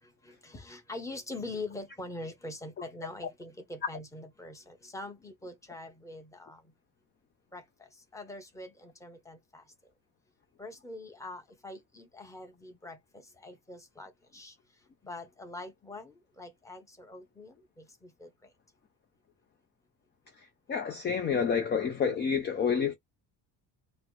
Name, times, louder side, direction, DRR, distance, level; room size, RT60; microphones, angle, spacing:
voice 1, 0.0-6.7 7.5-9.9 10.6-18.5, left 2 dB, 5° left, 0.8 m, -44 dB
voice 2, 20.7-22.9, left 6 dB, 25° left, 0.4 m, -28 dB
4.2 x 2.0 x 4.5 m
cardioid pair, 180°, 44 cm